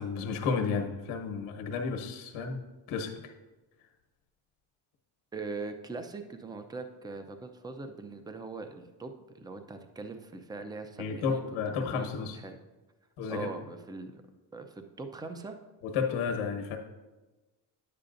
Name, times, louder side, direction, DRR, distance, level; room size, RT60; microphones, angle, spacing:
voice 1, 0.0-2.6 2.9-3.1 11.0-12.4 13.2-13.5 15.8-16.8, left 5 dB, 85° left, 4 dB, 1.2 m, -32 dB
voice 2, 5.3-11.4 11.8-12.6 13.3-14.2 14.5-15.6, right 3 dB, 10° right, 7 dB, 0.5 m, -41 dB
10.0 x 8.5 x 2.6 m, 1.2 s
cardioid pair, 115°, 47 cm